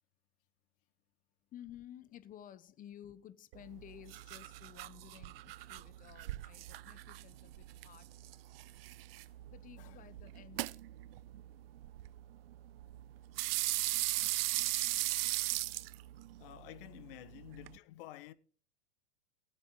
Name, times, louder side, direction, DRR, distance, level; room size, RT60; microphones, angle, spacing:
voice 1, 1.5-8.1 9.5-10.8, left 11 dB, 25° left, 0.8 m, -54 dB
sound 1, 3.5-17.8, right 17 dB, 60° right, 0.5 m, -39 dB
voice 2, 9.8-10.1 16.4-18.3, left 14 dB, 50° left, 1.3 m, -51 dB
18.5 x 8.3 x 3.7 m
hypercardioid pair, 115°, 35 cm